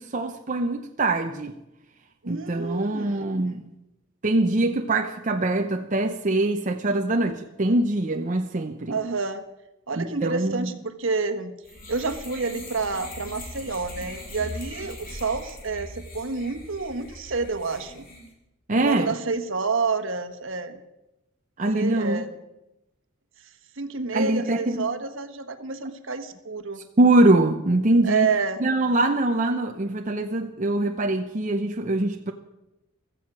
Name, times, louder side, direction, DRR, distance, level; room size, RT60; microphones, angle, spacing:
voice 1, 0.0-1.5 2.3-3.7 4.2-9.0 10.0-10.7 18.7-19.2 21.6-22.2 24.1-24.9 27.0-28.3 28.6-32.3, right 2 dB, 35° right, 4 dB, 0.7 m, -23 dB
voice 2, 2.2-3.2 8.9-9.4 9.9-11.5 11.9-18.0 18.8-20.8 21.7-22.3 23.8-26.8 28.0-28.6, right 4 dB, 65° right, 9 dB, 1.4 m, -29 dB
sound 1, 11.6-18.3, left 1 dB, 45° left, 3.6 m, -40 dB
15.5 x 14.0 x 6.1 m, 0.93 s
head